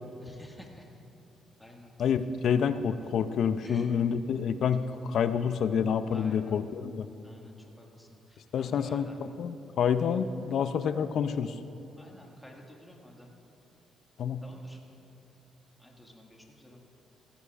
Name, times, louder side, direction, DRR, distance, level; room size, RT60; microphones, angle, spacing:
voice 1, 0.2-0.9 1.6-1.9 3.6-3.9 6.1-6.7 7.2-9.2 12.0-13.3 14.4-14.8 15.8-16.8, left 1 dB, 10° left, 0 dB, 1.8 m, -51 dB
voice 2, 2.0-7.1 8.5-11.5 14.2-14.4, left 7 dB, 65° left, 12 dB, 0.5 m, -28 dB
15.5 x 15.0 x 2.4 m, 2.8 s
cardioid pair, 90°, 0 cm